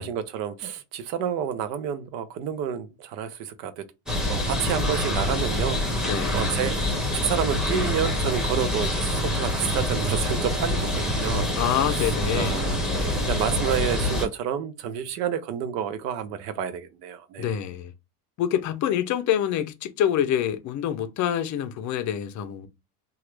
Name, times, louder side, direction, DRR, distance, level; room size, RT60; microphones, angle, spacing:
voice 1, 0.0-3.8 4.2-17.5, right 8 dB, 80° right, 0.8 m, -30 dB
sound 1, 4.1-14.3, left 1 dB, ahead, 0.9 m, -26 dB
voice 2, 6.0-6.4 11.6-12.8 17.4-17.9 18.4-22.7, left 10 dB, 40° left, 0.5 m, -26 dB
2.9 x 2.4 x 3.2 m
supercardioid pair, 120°, 48 cm